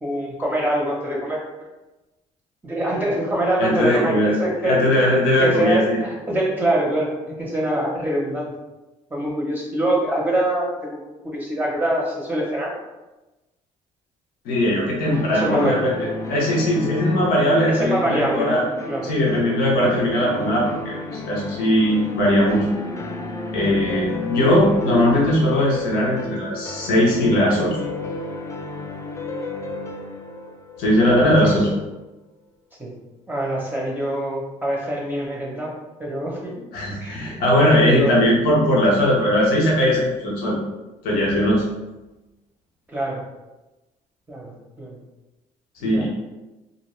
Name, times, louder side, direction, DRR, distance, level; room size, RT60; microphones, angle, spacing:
voice 1, 0.0-1.4 2.6-7.1 7.4-8.5 9.1-11.0 11.2-12.7 15.3-15.8 17.7-18.6 18.9-19.1 31.1-31.7 32.8-32.9 33.3-35.7 36.0-36.6 37.0-37.4 37.8-38.2 42.9-43.2 44.3-45.0 45.8-46.1, right 1 dB, 10° right, -4 dB, 0.7 m, -24 dB
voice 2, 3.6-4.4 4.6-6.0 14.4-18.6 19.0-22.7 23.5-27.8 30.8-31.7 36.7-40.5 41.0-41.6 45.8-46.1, left 1 dB, 80° left, -4 dB, 0.9 m, -19 dB
sound 1, 15.1-31.8, left 2 dB, 20° left, 0.4 m, -32 dB
2.5 x 2.2 x 3.1 m, 1.1 s
supercardioid pair, 80°, 15 cm